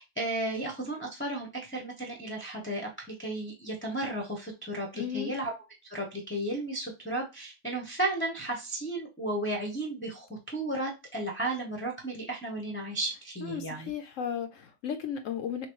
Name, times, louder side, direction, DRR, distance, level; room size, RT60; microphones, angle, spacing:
voice 1, 0.0-2.9 3.2-5.5 5.9-13.9, right 1 dB, 10° left, 0.8 m, -34 dB
voice 2, 4.9-5.3 13.4-15.7, left 8 dB, 65° left, 0.9 m, -35 dB
6.7 x 2.3 x 3.1 m
omnidirectional pair, 1.6 m